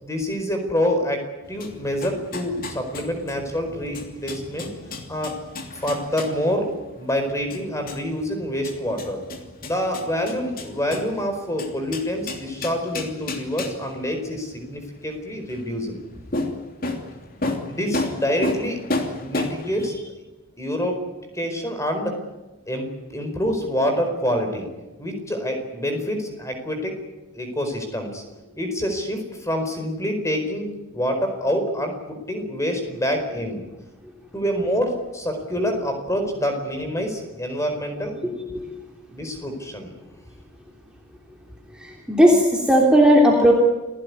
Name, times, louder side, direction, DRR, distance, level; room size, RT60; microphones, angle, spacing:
voice 1, 0.0-4.7 5.1-5.3 5.7-6.7 7.0-9.2 9.6-16.0 17.7-18.8 19.1-20.1 20.6-21.0 21.3-22.1 22.7-24.7 25.0-27.0 27.3-28.2 28.6-30.7 30.9-33.7 34.3-38.3 39.1-40.0, equal, 15° left, 5 dB, 4.7 m, -26 dB
sound 1, 1.4-19.9, left 2 dB, 40° left, 2.9 m, -33 dB
voice 2, 41.7-43.5, equal, 5° right, -2 dB, 3.3 m, -16 dB
28.5 x 16.5 x 9.7 m, 1.1 s
head